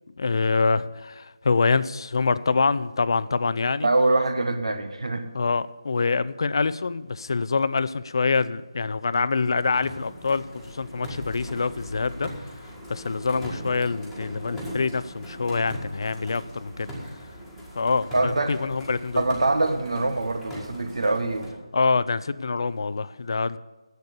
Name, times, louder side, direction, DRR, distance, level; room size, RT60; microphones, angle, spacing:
voice 1, 0.2-3.9 5.3-12.6 12.9-17.2 17.8-19.2 21.7-23.6, left 4 dB, 55° left, 16 dB, 0.4 m, -25 dB
voice 2, 3.8-5.3 18.1-18.5 19.1-21.6, right 2 dB, 75° right, 8 dB, 1.4 m, -24 dB
sound 1, 9.3-21.5, equal, ahead, 1.7 m, -40 dB
10.5 x 8.2 x 6.8 m, 1.2 s
figure-of-eight pair, 165°, 3 cm